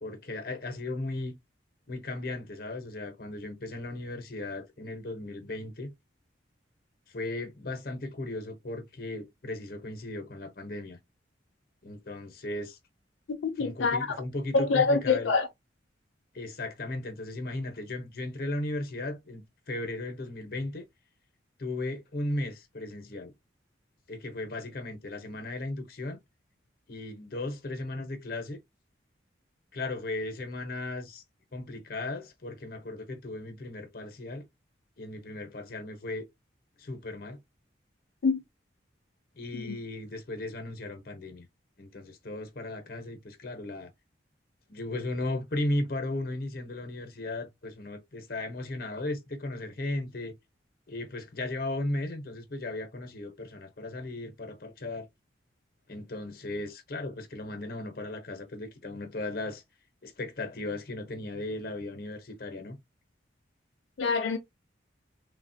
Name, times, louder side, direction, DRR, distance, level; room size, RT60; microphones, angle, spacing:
voice 1, 0.0-1.3 1.9-5.9 7.1-11.0 11.8-12.8 13.6-15.3 16.3-20.8 21.6-23.3 24.1-26.2 26.9-28.6 29.7-31.2 31.5-34.4 35.0-36.2 36.8-37.4 39.4-41.5 41.8-43.9 44.7-50.3 50.9-55.1 55.9-59.6 60.0-62.8, left 2 dB, 50° left, 0.7 m, -36 dB
voice 2, 13.3-14.0 14.5-15.5 38.2-38.4 39.5-39.8 64.0-64.4, left 4 dB, 85° left, 0.5 m, -25 dB
3.3 x 2.1 x 2.6 m
head